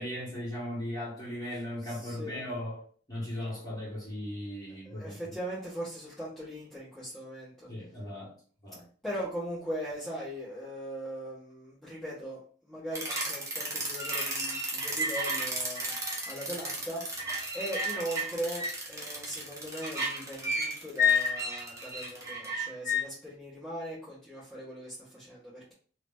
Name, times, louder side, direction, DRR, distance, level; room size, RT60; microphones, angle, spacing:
voice 1, 0.0-5.3 7.7-8.4 8.6-8.9, left 1 dB, 20° left, 1.8 m, -37 dB
voice 2, 1.8-2.4 4.8-7.7 9.0-25.7, equal, ahead, 1.4 m, -39 dB
sound 1, 12.9-23.0, left 1 dB, 15° right, 0.9 m, -32 dB
2.9 x 2.9 x 3.6 m
head